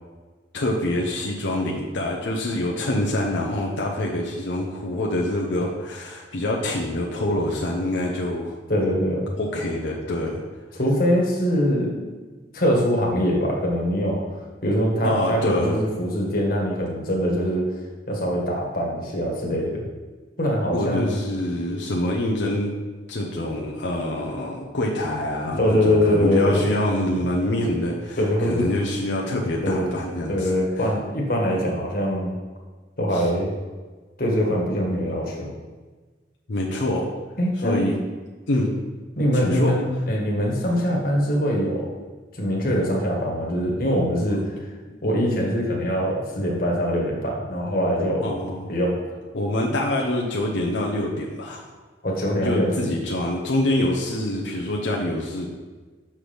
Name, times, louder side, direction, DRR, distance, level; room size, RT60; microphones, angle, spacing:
voice 1, 0.5-8.5 9.4-10.4 15.0-15.8 20.7-22.7 23.1-30.5 33.1-33.3 36.5-37.1 37.6-38.0 38.5-38.7 39.3-39.7 48.2-48.7 49.3-51.7 52.4-55.5, left 1 dB, 85° left, -2 dB, 0.8 m, -25 dB
voice 2, 8.7-9.3 10.7-12.2 12.5-14.2 14.6-17.7 18.1-19.9 20.4-21.2 25.6-26.6 27.2-27.3 28.2-28.6 29.6-29.9 30.3-32.3 33.0-33.5 34.2-35.5 37.4-37.9 39.2-41.9 42.3-44.6 45.0-48.3 48.7-48.9 52.0-52.9, equal, 55° left, -2 dB, 1.5 m, -23 dB
6.3 x 5.9 x 3.4 m, 1.3 s
head